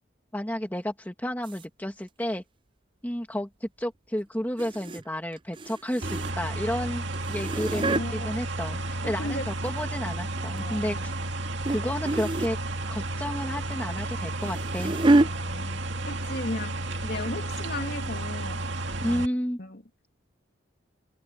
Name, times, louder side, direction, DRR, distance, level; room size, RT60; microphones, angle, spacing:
voice 1, 0.3-2.4 3.0-11.1 11.7-12.6 12.9-15.0 19.0-19.6, equal, 10° left, 2.0 m, -31 dB
sound 1, 1.4-1.6 4.6-5.0 5.3-6.5 7.1-8.1 9.1-9.9 10.3-10.6 11.6-11.8 12.0-12.6 14.0-15.3 16.2-16.4 16.6-16.7 17.3-17.4, right 2 dB, 25° right, 0.5 m, -27 dB
sound 2, 6.0-19.3, right 2 dB, 65° right, 2.3 m, -32 dB
voice 2, 7.7-8.4 9.0-9.5 10.5-11.3 15.2-19.2 19.6-19.8, left 1 dB, 55° left, 2.7 m, -37 dB
head